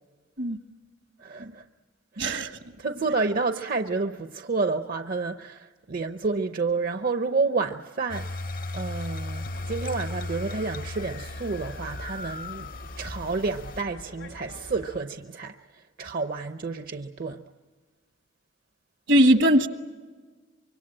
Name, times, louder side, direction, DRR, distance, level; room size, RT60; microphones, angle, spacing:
voice 1, 1.2-1.6 2.1-2.3 2.8-8.4 8.7-12.7 13.0-17.4, right 4 dB, 50° right, 0.7 m, -30 dB
voice 2, 2.2-2.6 19.1-19.7, equal, 75° right, 1.5 m, -20 dB
sound 1, 8.1-13.8, left 2 dB, 50° left, 0.7 m, -36 dB
sound 2, 9.4-15.0, left 1 dB, 85° left, 2.6 m, -45 dB
25.0 x 23.5 x 8.8 m
head